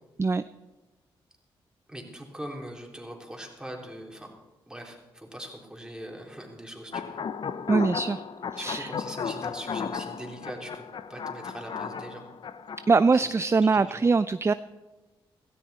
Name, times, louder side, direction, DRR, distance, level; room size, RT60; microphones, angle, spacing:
voice 1, 1.9-4.3 4.7-7.2 8.6-10.8 11.1-12.2 13.1-13.3 13.6-14.1, right 1 dB, 10° right, 0 dB, 3.7 m, -41 dB
sound 1, 6.9-13.0, left 6 dB, 55° left, 0.7 m, -35 dB
voice 2, 7.7-8.2 8.6-8.9 12.9-14.5, right 4 dB, 30° right, 14 dB, 0.4 m, -22 dB
16.5 x 13.5 x 4.3 m, 1.2 s
cardioid pair, 65°, 10 cm